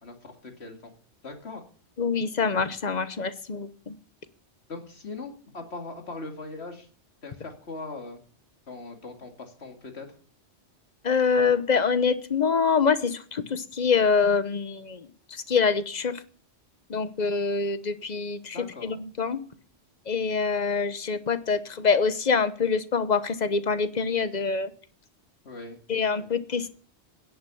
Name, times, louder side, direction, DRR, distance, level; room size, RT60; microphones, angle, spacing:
voice 1, 0.0-0.9 1.2-1.6 4.7-6.9 7.2-8.2 8.7-10.1 18.5-18.9 25.4-25.8 26.2-26.3, left 3 dB, 70° left, 4 dB, 2.6 m, -40 dB
voice 2, 2.0-4.0 11.0-16.2 16.9-19.4 20.1-24.7 25.9-26.7, left 5 dB, 40° left, 13 dB, 1.0 m, -25 dB
10.5 x 8.9 x 7.0 m, 0.43 s
omnidirectional pair, 1.1 m